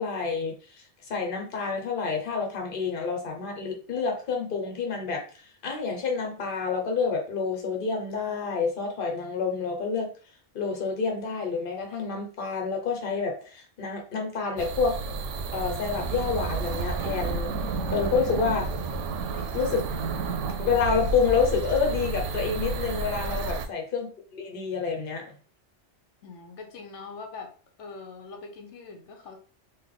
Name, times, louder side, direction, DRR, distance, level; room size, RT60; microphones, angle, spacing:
voice 1, 0.0-10.1 10.5-15.0 15.5-18.7 19.3-19.9 20.6-25.3, left 5 dB, 50° left, 2 dB, 1.1 m, -28 dB
sound 1, 14.6-23.7, right 4 dB, 90° right, 0.9 m, -31 dB
voice 2, 23.4-23.8 26.2-27.5 27.8-29.4, left 4 dB, 90° left, 3 dB, 1.1 m, -42 dB
3.4 x 2.6 x 3.7 m, 0.38 s
omnidirectional pair, 1.2 m